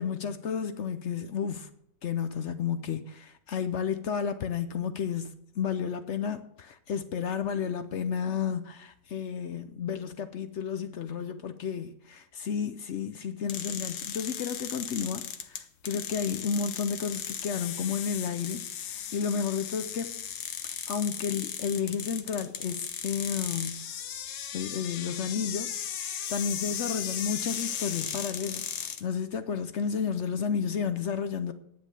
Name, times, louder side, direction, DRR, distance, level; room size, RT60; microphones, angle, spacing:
voice 1, 0.0-1.7 2.0-20.2 20.9-23.8 24.5-25.8 26.3-31.5, left 7 dB, 65° left, 0.7 m, -32 dB
sound 1, 13.5-29.0, left 9 dB, 90° left, 1.6 m, -36 dB
9.5 x 8.2 x 6.6 m
omnidirectional pair, 2.0 m